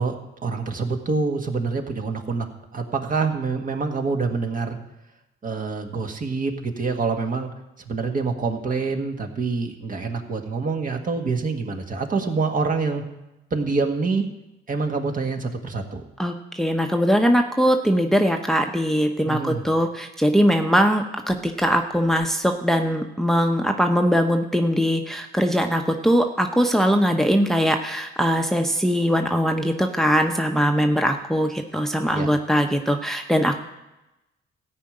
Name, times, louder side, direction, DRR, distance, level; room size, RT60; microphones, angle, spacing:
voice 1, 0.0-2.5 2.7-4.8 5.4-7.5 7.8-13.0 13.5-14.3 14.7-16.0 19.2-19.6 32.1-32.3, right 4 dB, 45° right, 4 dB, 1.6 m, -26 dB
voice 2, 16.2-33.6, equal, ahead, 4 dB, 0.9 m, -21 dB
14.5 x 5.2 x 8.8 m, 0.97 s
cardioid pair, 90°, 20 cm